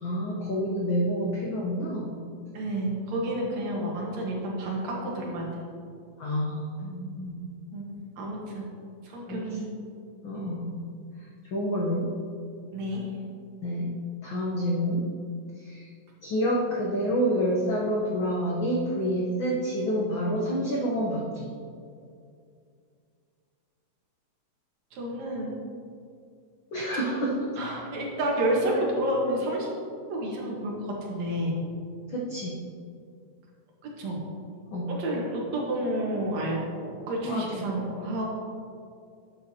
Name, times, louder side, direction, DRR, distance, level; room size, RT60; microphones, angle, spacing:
voice 1, 0.0-2.2 6.2-7.4 9.3-9.6 10.2-10.9 11.2-12.1 13.6-13.9 14.2-15.1 15.6-15.9 16.2-21.5 26.7-27.5 32.1-32.6 34.7-34.9 37.2-37.6, equal, 85° left, -3 dB, 1.0 m, -28 dB
voice 2, 2.5-5.5 7.7-8.7 9.0-9.7 10.3-10.5 12.7-13.1 24.9-25.6 27.6-29.7 30.1-31.6 34.0-34.2 34.9-38.3, right 1 dB, 65° right, -3 dB, 2.5 m, -30 dB
11.0 x 7.8 x 2.8 m, 2.4 s
omnidirectional pair, 3.6 m